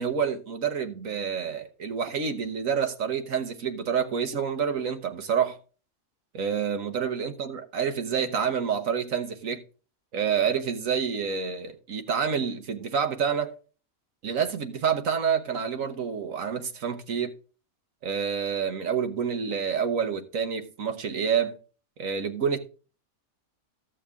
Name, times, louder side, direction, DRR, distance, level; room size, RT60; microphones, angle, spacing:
voice 1, 0.0-5.6 6.3-9.6 10.1-13.5 14.2-17.3 18.0-21.6 22.0-22.6, right 7 dB, 70° right, 1.5 m, -28 dB
14.0 x 6.4 x 3.5 m
omnidirectional pair, 1.5 m